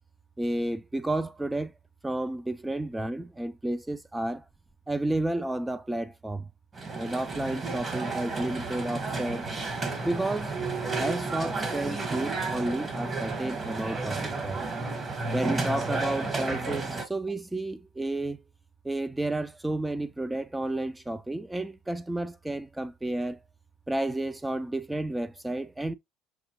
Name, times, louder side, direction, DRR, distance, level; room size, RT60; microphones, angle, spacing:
voice 1, 0.4-1.7 2.0-4.4 4.9-6.5 7.0-9.5 10.0-10.6 11.0-14.6 15.3-18.4 18.8-23.4 23.9-25.9, right 1 dB, 10° right, 0.5 m, -31 dB
sound 1, 6.7-17.0, right 3 dB, 30° right, 1.4 m, -32 dB
sound 2, 7.6-16.1, right 6 dB, 60° right, 3.4 m, -54 dB
6.0 x 2.8 x 3.0 m
hypercardioid pair, 80°, 0 cm